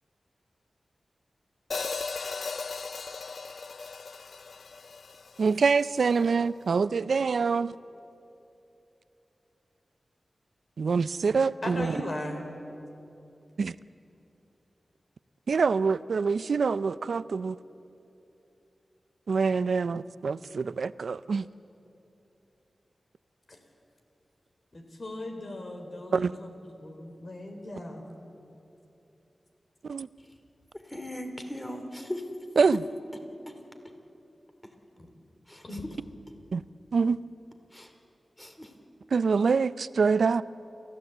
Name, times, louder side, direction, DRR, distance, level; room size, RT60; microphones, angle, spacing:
Hi-hat, 1.7-5.9, left 4 dB, 70° left, 0.4 m, -37 dB
voice 1, 5.4-7.7 10.8-12.0 13.6-13.7 15.5-17.6 19.3-21.5 26.1-26.3 29.8-30.1 32.6-32.8 36.5-36.6 36.9-37.2 39.1-40.4, right 5 dB, 85° right, 16 dB, 0.5 m, -25 dB
voice 2, 11.6-12.4 23.5-23.6 24.7-26.5 26.8-28.1 34.9-35.1 35.6-35.9, left 1 dB, 50° left, 4 dB, 3.7 m, -38 dB
voice 3, 30.8-32.2 35.5-35.6 37.7-37.9 38.4-38.7, left 1 dB, 15° left, 5 dB, 2.6 m, -38 dB
28.5 x 15.0 x 8.1 m, 2.9 s
wide cardioid pair, 75°, 0 cm